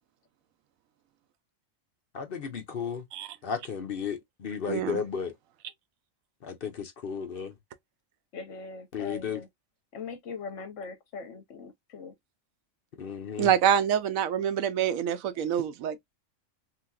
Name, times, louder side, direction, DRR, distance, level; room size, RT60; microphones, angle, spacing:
voice 1, 2.1-3.0 3.4-5.3 6.4-7.5 8.9-9.4 13.0-13.5, left 7 dB, 50° left, 0.8 m, -34 dB
voice 2, 4.7-5.0 13.4-16.0, right 9 dB, 85° right, 1.0 m, -26 dB
voice 3, 8.3-9.5 9.9-12.1, left 4 dB, 70° left, 1.2 m, -41 dB
3.3 x 2.9 x 2.3 m
omnidirectional pair, 1.4 m